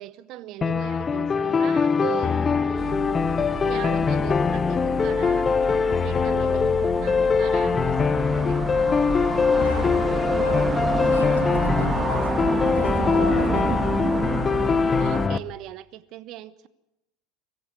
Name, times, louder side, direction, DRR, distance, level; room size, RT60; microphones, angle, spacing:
voice 1, 0.0-5.5 6.0-8.8 15.0-16.7, right 14 dB, 45° right, 1.0 m, -38 dB
sound 1, 0.6-15.4, left 5 dB, 25° left, 0.7 m, -22 dB
sound 2, 2.8-15.3, right 5 dB, 25° right, 1.6 m, -30 dB
voice 2, 9.6-10.1 10.4-10.7 11.1-12.3 12.6-13.9, left 5 dB, 80° left, 2.0 m, -37 dB
23.0 x 13.0 x 9.8 m
figure-of-eight pair, 75°, 0 cm